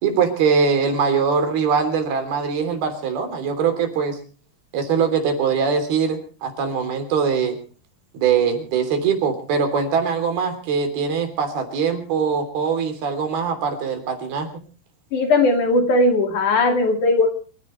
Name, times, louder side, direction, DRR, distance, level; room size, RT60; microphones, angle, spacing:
voice 1, 0.0-4.2 4.7-7.6 8.1-14.5, right 6 dB, 70° right, 7 dB, 5.1 m, -22 dB
voice 2, 15.1-17.3, left 2 dB, 55° left, 5 dB, 3.6 m, -18 dB
27.0 x 15.5 x 3.2 m, 0.37 s
omnidirectional pair, 4.6 m